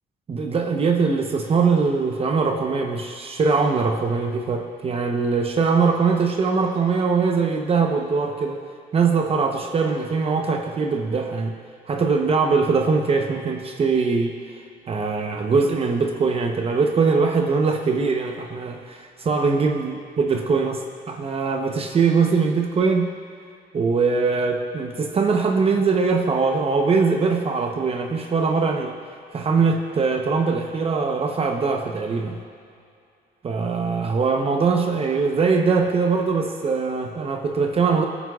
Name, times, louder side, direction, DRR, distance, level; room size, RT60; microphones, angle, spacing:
voice 1, 0.3-8.6 8.9-11.5 11.9-14.6 14.9-23.1 23.7-28.9 29.3-32.4 33.4-38.0, right 4 dB, 35° right, 3 dB, 0.9 m, -22 dB
23.0 x 9.2 x 2.4 m, 2.3 s
cardioid pair, 110°, 17 cm